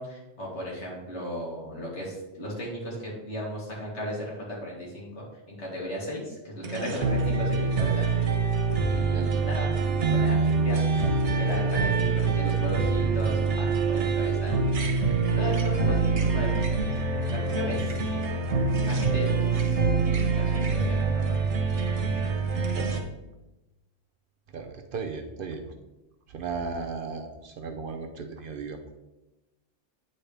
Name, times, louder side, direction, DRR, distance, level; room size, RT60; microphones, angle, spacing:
voice 1, 0.0-4.4 4.6-8.0 8.9-9.8 10.1-10.8 11.4-14.6 15.3-16.8 17.3-18.0 18.9-19.8 20.1-21.4, equal, 85° left, -4 dB, 2.2 m, -35 dB
sound 1, 6.6-23.0, right 4 dB, 85° right, 1.2 m, -25 dB
voice 2, 24.5-25.6 26.3-28.8, right 4 dB, 55° right, 5 dB, 0.7 m, -35 dB
9.0 x 4.2 x 3.3 m, 1.0 s
omnidirectional pair, 1.2 m